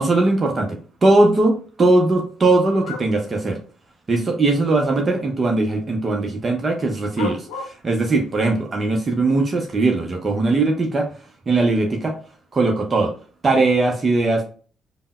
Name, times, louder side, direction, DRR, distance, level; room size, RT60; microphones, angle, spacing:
voice 1, 0.0-3.6 4.1-7.4 7.8-11.1 11.5-12.1 12.5-13.1 13.4-14.4, right 2 dB, 35° right, 2 dB, 0.7 m, -19 dB
sound 1, 2.8-3.1 4.3-4.4 7.2-7.8, left 5 dB, 70° left, 0.6 m, -31 dB
5.2 x 2.1 x 2.2 m, 0.40 s
figure-of-eight pair, 45°, 0 cm